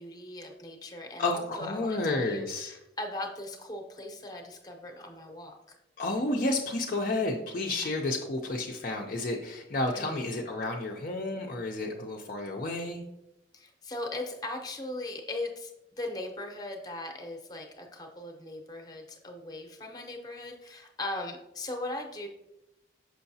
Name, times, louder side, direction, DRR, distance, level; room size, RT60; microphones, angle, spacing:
voice 1, 0.0-5.8 9.9-10.2 13.5-22.3, left 2 dB, 20° left, 3 dB, 0.8 m, -39 dB
voice 2, 1.2-2.8 6.0-13.0, left 2 dB, 45° left, 1 dB, 0.5 m, -31 dB
6.2 x 5.6 x 2.7 m, 0.88 s
head